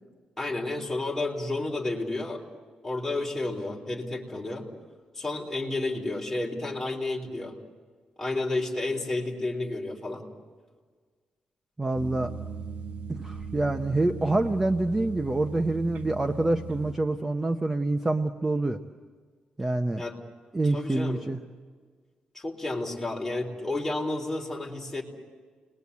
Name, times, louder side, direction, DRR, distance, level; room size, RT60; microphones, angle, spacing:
voice 1, 0.4-2.4 2.8-4.7 5.2-7.6 8.2-10.2 20.0-20.2 20.7-21.2 22.3-25.0, left 2 dB, 10° left, -2 dB, 3.9 m, -31 dB
voice 2, 11.8-12.3 13.1-18.8 19.6-20.0 20.5-21.4, right 2 dB, 15° right, 6 dB, 0.8 m, -26 dB
sound 1, 11.9-16.9, right 5 dB, 70° right, 1.0 m, -39 dB
29.5 x 21.0 x 8.4 m, 1.5 s
wide cardioid pair, 175°, 3 cm